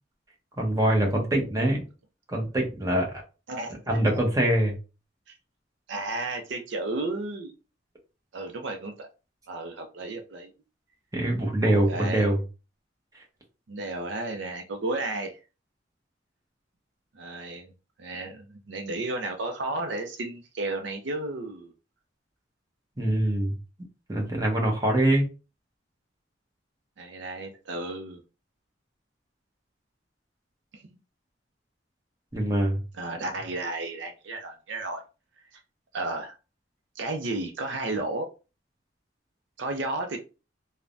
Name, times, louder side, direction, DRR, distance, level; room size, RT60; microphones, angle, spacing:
voice 1, 0.6-1.8 2.3-3.2 3.9-4.7 11.1-12.4 23.0-23.5 24.1-25.3 32.3-32.8, right 1 dB, 20° right, 0.8 m, -24 dB
voice 2, 5.9-7.5 8.3-9.1 9.5-10.5 11.6-12.3 13.7-15.4 17.1-17.7 18.0-21.7 27.0-28.2 30.7-31.0 32.9-35.0 35.5-35.6 35.9-36.4 37.0-38.3 39.6-40.2, right 2 dB, 65° right, 0.5 m, -33 dB
3.3 x 2.1 x 2.5 m
head